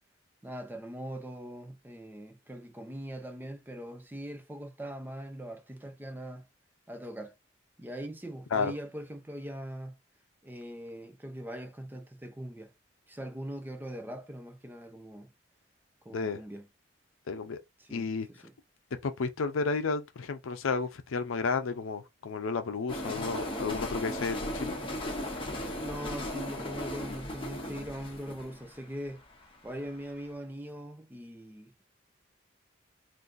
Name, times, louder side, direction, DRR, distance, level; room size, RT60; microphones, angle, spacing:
voice 1, 0.4-6.4 6.9-7.3 7.8-9.9 10.4-12.7 13.1-15.3 16.0-16.7 17.8-18.5 25.5-29.2 29.6-31.8, equal, 10° right, 0.4 m, -41 dB
voice 2, 17.3-17.6 17.9-18.3 19.0-24.8, left 4 dB, 85° left, 0.5 m, -32 dB
sound 1, 22.9-29.9, left 1 dB, 25° left, 0.8 m, -37 dB
3.9 x 2.6 x 2.5 m
head